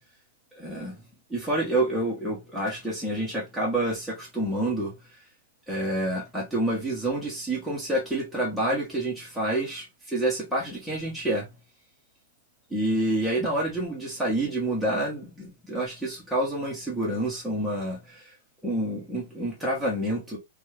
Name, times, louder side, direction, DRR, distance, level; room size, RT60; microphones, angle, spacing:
voice 1, 0.5-1.0 1.3-4.9 5.7-11.4 12.7-18.3 18.6-20.4, right 1 dB, ahead, 0.9 m, -28 dB
2.6 x 2.3 x 3.1 m
hypercardioid pair, 150°, 0 cm